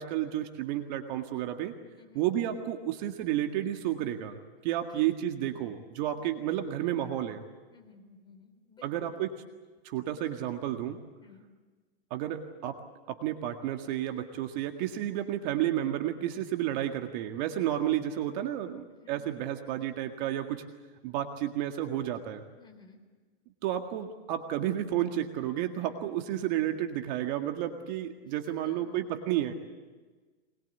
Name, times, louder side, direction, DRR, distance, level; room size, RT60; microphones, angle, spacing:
voice 1, 0.0-1.7 2.1-7.4 8.8-9.3 9.8-11.0 12.1-12.8 13.1-20.6 21.0-22.4 23.6-29.5, right 12 dB, 40° right, 5 dB, 1.9 m, -31 dB
voice 2, 5.4-5.8 6.1-6.3 7.7-9.1 11.2-11.5 19.0-19.3 22.6-23.0 28.5-29.0, left 5 dB, 15° left, 3 dB, 3.7 m, -55 dB
24.0 x 21.5 x 8.3 m, 1.3 s
hypercardioid pair, 140°, 33 cm